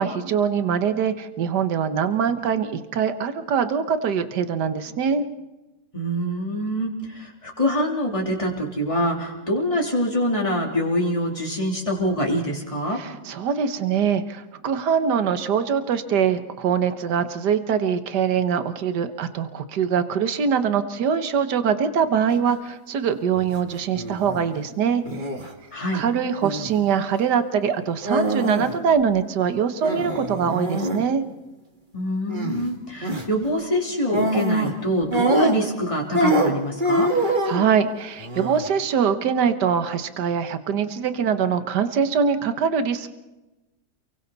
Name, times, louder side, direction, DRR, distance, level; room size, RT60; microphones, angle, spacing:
voice 1, 0.0-5.2 12.9-25.0 25.9-31.2 37.3-43.1, right 7 dB, 75° right, 10 dB, 1.8 m, -23 dB
voice 2, 5.9-13.0 25.7-26.0 31.9-37.1, equal, 20° left, -1 dB, 3.5 m, -25 dB
sound 1, 23.3-23.6 23.9-24.4 25.0-25.5 26.4-26.8 28.0-28.8 29.0-29.1 29.8-31.0 32.3-32.7 33.0-33.3 34.1-34.8 35.1-35.8 36.1-37.6 38.2-38.7, right 1 dB, 30° right, 2.2 m, -24 dB
29.5 x 23.5 x 4.1 m, 1.0 s
omnidirectional pair, 1.8 m